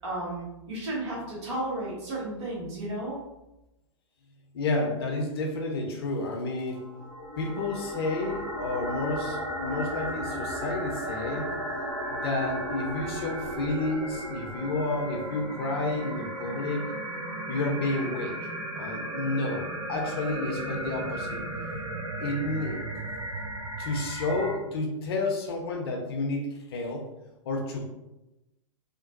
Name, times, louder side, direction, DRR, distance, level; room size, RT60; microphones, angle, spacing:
voice 1, 0.0-3.2, right 1 dB, 55° right, -5 dB, 1.3 m, -33 dB
voice 2, 4.5-6.8 7.4-11.5 12.1-16.9 17.5-18.4 18.8-21.4 22.2-22.8 23.8-27.0 27.5-27.9, left 2 dB, 50° left, 1 dB, 0.6 m, -30 dB
sound 1, 6.7-24.5, right 1 dB, 80° right, 0.7 m, -35 dB
2.9 x 2.2 x 2.6 m, 0.94 s
figure-of-eight pair, 105°, 17 cm